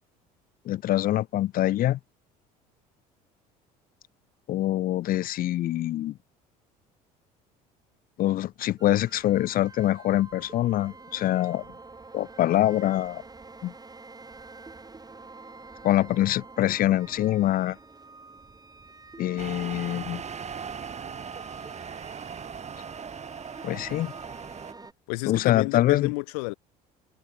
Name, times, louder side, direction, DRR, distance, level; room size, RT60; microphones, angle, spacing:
voice 1, 0.7-2.0 4.5-6.2 8.2-11.7 12.1-13.2 13.6-13.7 15.8-17.8 19.2-20.2 23.6-24.1 25.3-26.1, left 14 dB, 50° left, 0.5 m, -24 dB
sound 1, 8.8-24.9, right 3 dB, 20° right, 6.4 m, -47 dB
sound 2, 19.4-24.7, right 6 dB, 35° right, 2.7 m, -39 dB
voice 2, 25.1-26.5, left 31 dB, 75° left, 1.2 m, -30 dB
hypercardioid pair, 70°, 20 cm